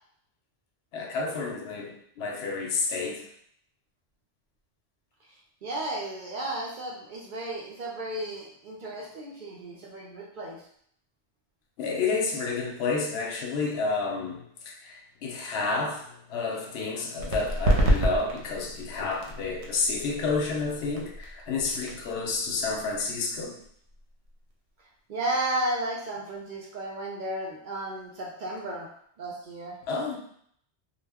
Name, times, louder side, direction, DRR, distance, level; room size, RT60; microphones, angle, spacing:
voice 1, 0.9-3.2 11.8-23.6 29.9-30.2, left 4 dB, 75° left, 0 dB, 0.8 m, -30 dB
voice 2, 5.6-10.6 25.1-28.9 29.2-29.8, right 1 dB, 55° right, -3 dB, 0.6 m, -33 dB
sound 1, 17.2-24.5, right 1 dB, 85° right, 0.9 m, -30 dB
2.2 x 2.0 x 3.3 m, 0.65 s
omnidirectional pair, 1.1 m